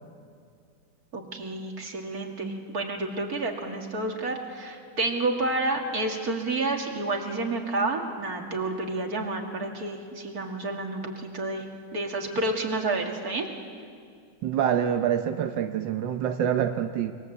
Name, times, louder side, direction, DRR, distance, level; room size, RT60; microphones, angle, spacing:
voice 1, 1.1-11.6 11.9-13.5, right 2 dB, 55° right, 2 dB, 3.0 m, -30 dB
voice 2, 14.4-17.1, right 9 dB, 90° right, 6 dB, 1.6 m, -26 dB
26.0 x 23.0 x 8.1 m, 2.3 s
omnidirectional pair, 1.9 m